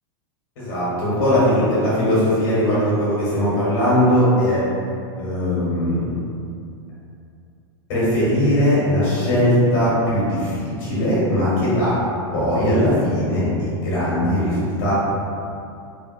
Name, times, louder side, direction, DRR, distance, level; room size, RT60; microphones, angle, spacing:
voice 1, 0.6-4.6 5.2-6.1 7.9-11.9 12.3-14.9, equal, 55° left, -10 dB, 1.4 m, -19 dB
3.6 x 2.4 x 2.6 m, 2.5 s
supercardioid pair, 175°, 14 cm